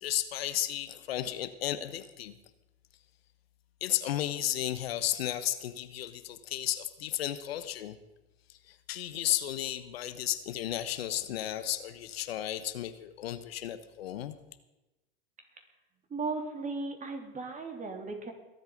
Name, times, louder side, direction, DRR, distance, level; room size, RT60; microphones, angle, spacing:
voice 1, 0.0-2.3 3.8-8.0 8.5-14.3, left 12 dB, 80° left, 12 dB, 1.0 m, -33 dB
voice 2, 16.1-18.3, right 3 dB, 25° right, 4 dB, 3.2 m, -36 dB
22.5 x 8.1 x 5.2 m, 1.0 s
hypercardioid pair, 95°, 30 cm